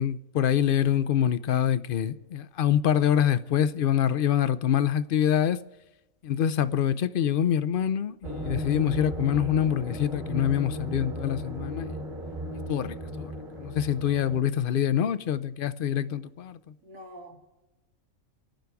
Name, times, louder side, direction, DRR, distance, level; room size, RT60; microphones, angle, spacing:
voice 1, 0.0-5.6 6.2-12.0 12.7-13.3 13.6-16.6, left 9 dB, 55° left, 0.6 m, -25 dB
sound 1, 8.2-14.4, equal, 40° right, 1.7 m, -35 dB
voice 2, 16.8-17.4, equal, 80° right, 3.0 m, -45 dB
29.0 x 11.5 x 3.5 m
omnidirectional pair, 1.4 m